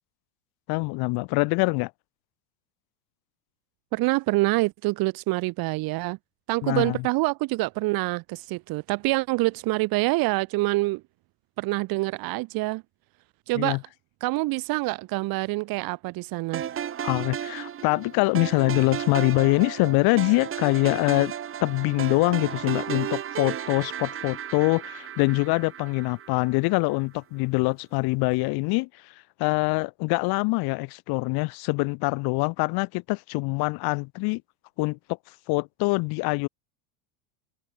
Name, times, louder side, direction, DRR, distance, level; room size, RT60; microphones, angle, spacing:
voice 1, 0.7-1.9 6.6-7.0 13.6-13.8 17.0-21.3 21.6-29.1 29.4-34.4 34.8-35.0 35.5-36.5, left 26 dB, 55° left, 5.2 m, -24 dB
voice 2, 3.9-6.2 6.5-11.0 11.6-12.8 13.5-13.8 14.2-16.8, right 22 dB, 50° right, 5.1 m, -26 dB
sound 1, 16.5-26.8, right 9 dB, 30° right, 5.8 m, -34 dB
supercardioid pair, 150°, 45 cm